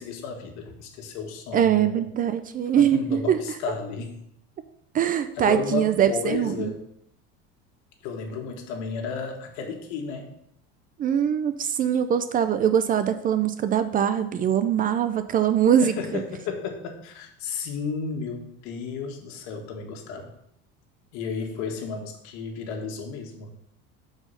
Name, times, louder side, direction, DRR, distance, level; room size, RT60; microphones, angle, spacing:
voice 1, 0.0-2.1 2.8-4.2 5.4-6.8 8.0-10.3 15.8-20.3 21.1-23.5, left 5 dB, 70° left, 3 dB, 1.6 m, -33 dB
voice 2, 1.5-3.4 4.9-6.7 11.0-15.9, right 9 dB, 30° right, 11 dB, 0.4 m, -22 dB
6.6 x 4.8 x 5.6 m, 0.74 s
cardioid pair, 135°, 29 cm